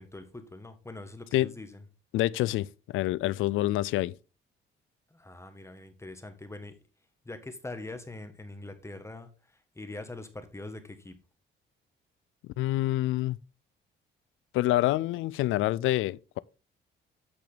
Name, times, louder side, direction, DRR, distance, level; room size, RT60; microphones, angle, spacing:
voice 1, 0.0-1.8 5.1-6.7 7.2-9.3 9.7-11.1, left 2 dB, 15° left, 1.6 m, -43 dB
voice 2, 2.1-4.2 12.6-13.4 14.5-16.4, left 16 dB, 85° left, 0.4 m, -27 dB
8.9 x 6.1 x 4.0 m
cardioid pair, 90°, 20 cm